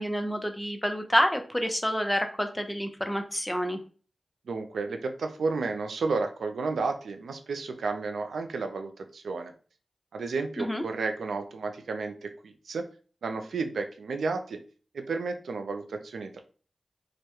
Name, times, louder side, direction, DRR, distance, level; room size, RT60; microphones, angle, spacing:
voice 1, 0.0-3.8 10.6-10.8, equal, 10° left, 6 dB, 0.5 m, -28 dB
voice 2, 4.5-9.5 10.1-12.8 13.2-14.6 14.9-16.4, right 4 dB, 90° right, 6 dB, 0.3 m, -32 dB
2.2 x 2.0 x 2.9 m, 0.39 s
cardioid pair, 45°, 0 cm